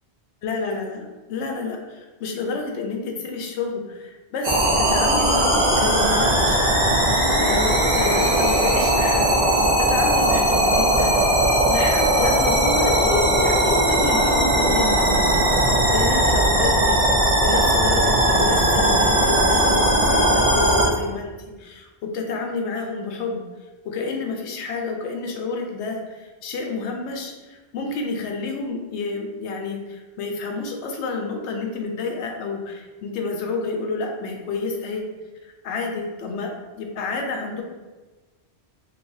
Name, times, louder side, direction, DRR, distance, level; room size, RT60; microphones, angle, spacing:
voice 1, 0.4-6.7 7.4-9.3 9.8-11.3 11.6-15.3 15.6-21.3 21.6-23.4 23.8-35.0 35.4-37.6, left 3 dB, 85° left, 2 dB, 0.9 m, -29 dB
sound 1, 4.4-20.9, right 1 dB, 40° right, 0.5 m, -19 dB
3.1 x 2.8 x 2.6 m, 1.2 s
omnidirectional pair, 1.1 m